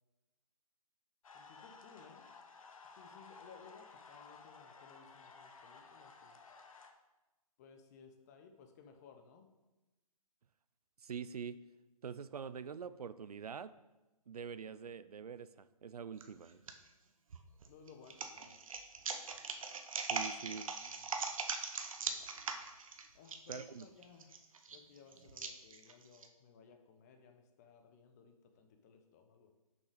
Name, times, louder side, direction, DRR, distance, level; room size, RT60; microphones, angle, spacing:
sound 1, 1.2-6.9, left 4 dB, 65° left, 1.1 m, -56 dB
voice 1, 1.3-2.3 2.9-6.4 7.6-9.5 17.7-18.6 20.3-20.6 20.9-21.0 23.1-24.4 24.7-29.5, left 6 dB, 25° left, 5 dB, 0.8 m, -60 dB
voice 2, 11.0-11.6 12.0-13.7 14.3-16.6 20.1-20.7 23.5-23.9, right 6 dB, 80° right, 15 dB, 0.5 m, -45 dB
sound 2, 16.2-16.7 17.3-26.3, right 5 dB, 60° right, 0.9 m, -41 dB
6.5 x 5.7 x 5.0 m, 1.1 s
hypercardioid pair, 145°, 19 cm